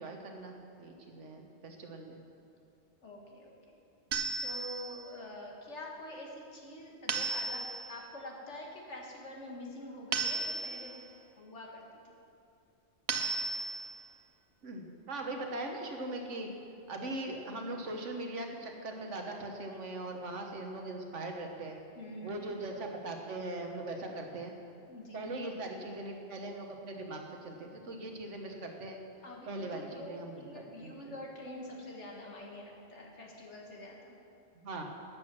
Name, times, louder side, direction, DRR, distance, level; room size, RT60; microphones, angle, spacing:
voice 1, 0.0-2.2 14.6-16.5 16.9-21.8 22.2-24.5 25.1-29.0 29.5-31.1 34.5-34.8, right 2 dB, 85° right, 2 dB, 1.6 m, -40 dB
voice 2, 3.0-3.8 4.4-11.1 11.4-11.8 22.0-22.6 24.9-25.2 29.2-34.1, left 1 dB, 75° left, -1 dB, 2.1 m, -46 dB
sound 1, 4.1-5.0 7.1-8.0 10.1-11.0 13.1-14.0, right 3 dB, 65° right, 1.1 m, -34 dB
12.0 x 8.5 x 6.1 m, 2.6 s
omnidirectional pair, 1.2 m